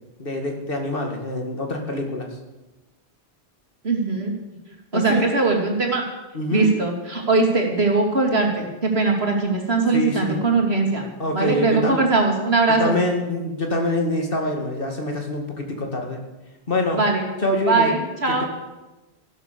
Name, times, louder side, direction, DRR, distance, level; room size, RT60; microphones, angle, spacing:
voice 1, 0.2-2.3 4.9-5.3 6.3-6.7 9.9-10.4 11.2-12.0 12.8-16.2 16.7-17.0 17.4-17.9, left 1 dB, 60° left, 2 dB, 2.5 m, -25 dB
voice 2, 3.8-4.3 4.9-6.0 6.5-11.0 11.3-13.0 16.9-17.2 17.7-18.4, right 3 dB, 75° right, 1 dB, 3.1 m, -20 dB
14.5 x 12.0 x 6.9 m, 1.1 s
omnidirectional pair, 1.1 m